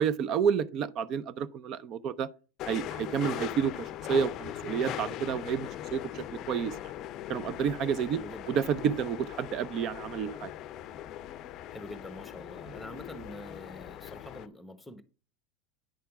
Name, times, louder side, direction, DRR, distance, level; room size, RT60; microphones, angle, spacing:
voice 1, 0.0-2.3 2.7-6.7 7.3-8.2 8.5-10.5, right 7 dB, 45° right, 0.5 m, -30 dB
sound 1, 2.6-14.5, left 12 dB, 45° left, 0.5 m, -40 dB
voice 2, 8.1-8.6 11.7-15.0, left 1 dB, 5° left, 0.9 m, -45 dB
8.9 x 3.4 x 5.9 m
supercardioid pair, 120°, 0 cm